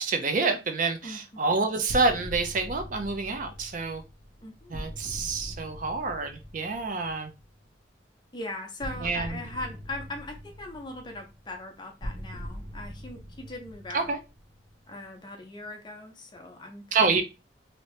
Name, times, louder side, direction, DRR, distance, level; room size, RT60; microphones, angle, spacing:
voice 1, 0.0-4.0 4.7-7.3 9.0-9.3 13.9-14.2 16.9-17.2, right 4 dB, 45° right, 0.5 m, -27 dB
voice 2, 1.0-1.4 4.4-4.8 8.3-14.2 14.9-17.2, left 2 dB, 25° left, 0.6 m, -40 dB
sound 1, 1.9-7.6 8.8-15.1, equal, 90° right, 1.0 m, -42 dB
2.8 x 2.6 x 3.1 m
head